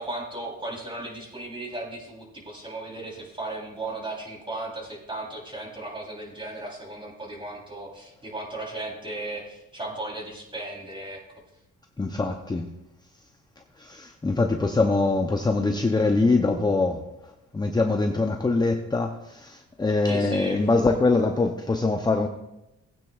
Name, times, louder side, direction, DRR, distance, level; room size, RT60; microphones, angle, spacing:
voice 1, 0.0-11.2 20.1-20.6, right 2 dB, 15° right, -2 dB, 3.7 m, -36 dB
voice 2, 12.0-12.7 13.8-22.3, left 3 dB, 15° left, 4 dB, 0.7 m, -23 dB
18.5 x 9.1 x 2.4 m, 0.92 s
cardioid pair, 90°, 30 cm